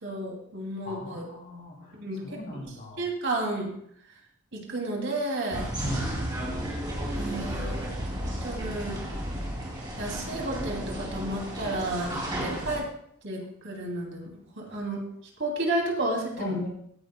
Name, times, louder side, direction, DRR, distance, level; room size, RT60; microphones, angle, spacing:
voice 1, 0.0-1.3 1.9-2.2 3.0-3.7 4.5-5.7 7.1-9.0 10.0-12.8 13.2-14.3 14.6-15.0 15.4-16.6, right 1 dB, 55° right, 0 dB, 2.6 m, -32 dB
voice 2, 0.9-3.1 5.8-6.2 16.4-16.7, left 1 dB, 40° left, 0 dB, 2.7 m, -39 dB
sound 1, 5.5-12.8, equal, 20° right, 2.6 m, -33 dB
16.5 x 11.0 x 2.2 m, 0.65 s
head